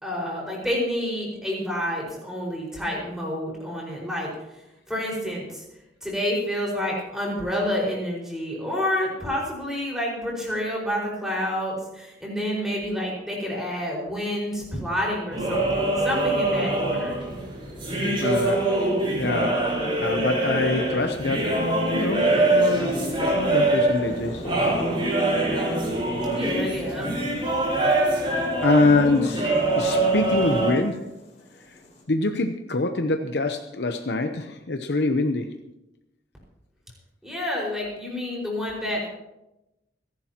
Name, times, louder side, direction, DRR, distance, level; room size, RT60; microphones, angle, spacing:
voice 1, 0.0-4.3 4.9-5.6 6.0-17.2 26.3-27.1 37.2-39.1, left 1 dB, 5° right, -3 dB, 5.2 m, -29 dB
sound 1, 15.3-30.7, right 2 dB, 30° right, 5.1 m, -24 dB
voice 2, 18.2-18.8 19.1-19.6 20.0-21.5 21.9-24.5 28.6-31.1 32.1-35.5, left 3 dB, 65° left, 6 dB, 0.9 m, -25 dB
sound 2, 22.2-32.0, left 1 dB, 40° left, 3.6 m, -42 dB
28.5 x 11.5 x 3.0 m, 0.93 s
head